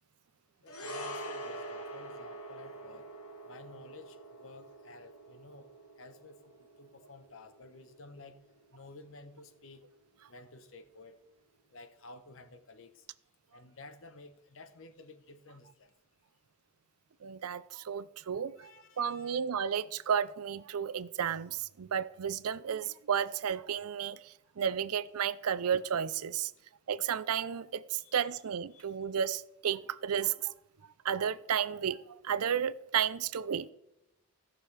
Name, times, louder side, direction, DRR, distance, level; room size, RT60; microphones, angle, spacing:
voice 1, 0.6-3.1 3.4-5.7 6.0-8.4 8.7-9.8 10.3-11.2 11.7-13.1 13.5-15.9 18.6-19.4 28.0-28.1 28.7-28.8, left 3 dB, 65° left, 0.9 m, -53 dB
sound 1, 0.7-9.1 9.4-9.6, right 1 dB, 85° left, 1.6 m, -45 dB
voice 2, 17.2-18.7 19.0-26.5 26.9-30.5 31.0-33.7, right 8 dB, 90° right, 0.5 m, -32 dB
17.0 x 6.3 x 3.3 m
head